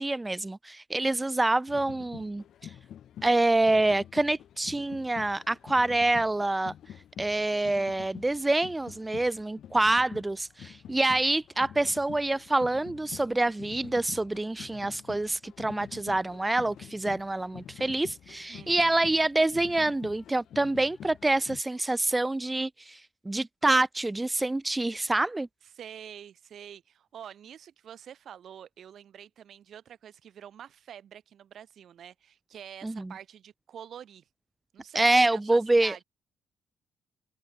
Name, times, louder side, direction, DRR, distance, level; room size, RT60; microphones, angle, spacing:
voice 1, 0.0-2.7 3.2-6.7 7.2-25.5 32.8-33.1 34.9-36.0, right 2 dB, 15° right, 0.7 m, -26 dB
sound 1, 1.7-21.6, left 10 dB, 70° left, 4.1 m, -47 dB
voice 2, 18.5-19.2 25.8-34.2 34.7-36.0, right 9 dB, 60° right, 3.7 m, -47 dB
open air
cardioid pair, 90°, 0 cm